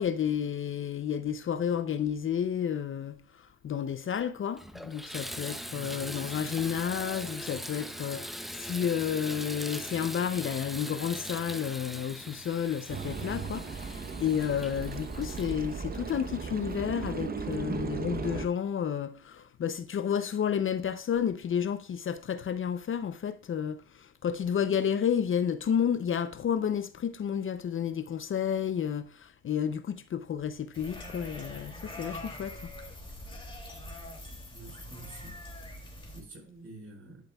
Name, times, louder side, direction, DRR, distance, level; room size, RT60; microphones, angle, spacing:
voice 1, 0.0-3.2 3.6-32.5, left 8 dB, 45° left, 0.6 m, -31 dB
Water tap faucet / Bathtub (filling or washing), 3.9-4.0 4.5-16.9 17.5-17.6 18.1-18.2, equal, ahead, 0.6 m, -41 dB
voice 2, 5.7-6.2 34.5-35.4 35.8-37.2, right 3 dB, 50° right, 4.2 m, -48 dB
sound 1, 12.9-18.5, right 5 dB, 30° right, 0.9 m, -36 dB
sound 2, 30.7-36.2, left 1 dB, 15° left, 2.7 m, -43 dB
11.0 x 7.7 x 2.3 m
cardioid pair, 90°, 30 cm